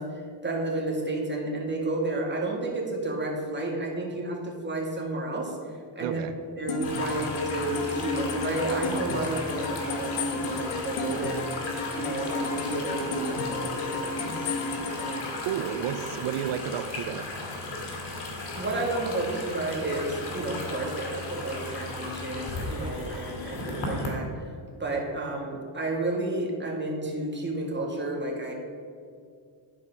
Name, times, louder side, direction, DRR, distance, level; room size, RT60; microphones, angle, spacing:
voice 1, 0.0-6.2 6.6-11.4 11.9-14.3 14.9-15.3 18.5-24.5 24.8-28.5, right 2 dB, 20° right, -1 dB, 2.2 m, -31 dB
voice 2, 6.0-6.3 15.4-17.3, right 10 dB, 90° right, 11 dB, 0.6 m, -31 dB
sound 1, 6.7-16.4, left 3 dB, 85° left, 1.2 m, -33 dB
sound 2, 6.8-24.1, left 2 dB, 55° left, 2.5 m, -36 dB
11.0 x 4.8 x 5.5 m, 2.3 s
cardioid pair, 95°, 49 cm